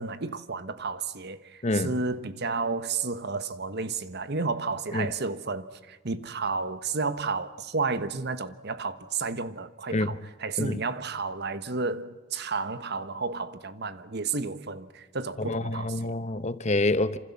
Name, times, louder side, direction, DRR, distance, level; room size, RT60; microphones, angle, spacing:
voice 1, 0.0-16.1, right 4 dB, 55° right, 1.3 m, -32 dB
voice 2, 15.4-17.2, left 2 dB, 35° left, 1.0 m, -27 dB
28.0 x 26.5 x 7.2 m
head